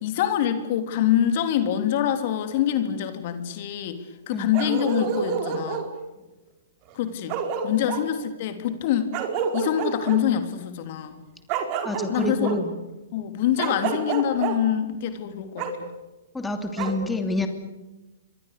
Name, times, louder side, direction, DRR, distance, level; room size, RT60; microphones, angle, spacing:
voice 1, 0.0-5.9 6.9-9.1 9.5-11.2 12.1-12.6 13.1-15.9, left 10 dB, 50° left, 8 dB, 3.2 m, -25 dB
Bark, 4.5-5.9 6.9-7.0 7.3-8.0 9.1-10.2 11.5-12.6 13.6-14.5 15.6-15.7 16.8-16.9, right 7 dB, 40° right, 4.6 m, -28 dB
voice 2, 11.8-12.7 16.3-17.5, left 2 dB, 10° left, 6 dB, 2.9 m, -27 dB
27.0 x 24.0 x 6.8 m, 1.1 s
hypercardioid pair, 120°, 0 cm